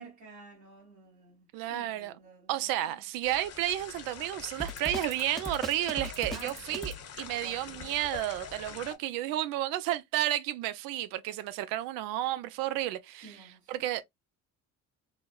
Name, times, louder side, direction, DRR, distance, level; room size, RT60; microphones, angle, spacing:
voice 1, 0.0-3.0 6.3-6.9 7.2-7.9 8.7-8.9 13.2-13.8, right 4 dB, 70° right, 1.8 m, -51 dB
voice 2, 1.5-2.1 2.5-14.0, right 13 dB, 90° right, 0.5 m, -32 dB
sound 1, 3.2-8.9, left 7 dB, 50° left, 0.9 m, -45 dB
Drum kit, 4.6-7.0, right 1 dB, ahead, 0.6 m, -38 dB
4.0 x 2.0 x 2.2 m
cardioid pair, 95°, 33 cm